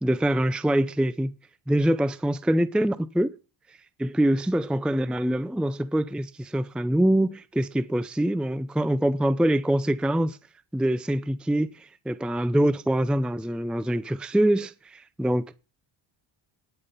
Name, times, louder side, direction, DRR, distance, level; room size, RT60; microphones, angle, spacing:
voice 1, 0.0-1.3 1.7-3.3 4.0-10.4 10.7-15.5, right 1 dB, ahead, 0.6 m, -24 dB
10.0 x 8.7 x 5.6 m
cardioid pair, 80°, 49 cm